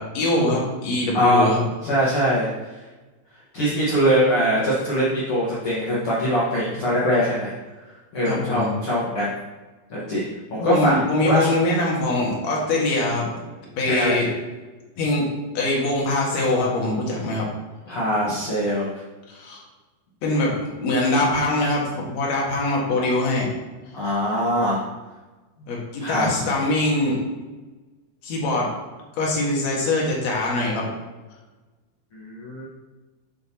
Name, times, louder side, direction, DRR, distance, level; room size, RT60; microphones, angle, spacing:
voice 1, 0.0-1.6 8.3-8.7 10.6-13.3 13.8-14.3 15.0-15.3 15.5-17.5 19.3-19.6 20.2-21.8 22.1-23.5 25.7-27.2 28.2-28.7 29.1-30.9, left 2 dB, 55° left, -3 dB, 2.2 m, -23 dB
voice 2, 1.1-1.5 1.8-2.5 3.5-7.5 8.1-9.3 9.9-11.0 11.2-11.5 13.9-14.2 17.9-18.9 23.9-24.8 26.0-26.6 32.1-32.7, equal, 70° left, -7 dB, 1.3 m, -22 dB
8.0 x 7.6 x 2.9 m, 1.2 s
omnidirectional pair, 4.9 m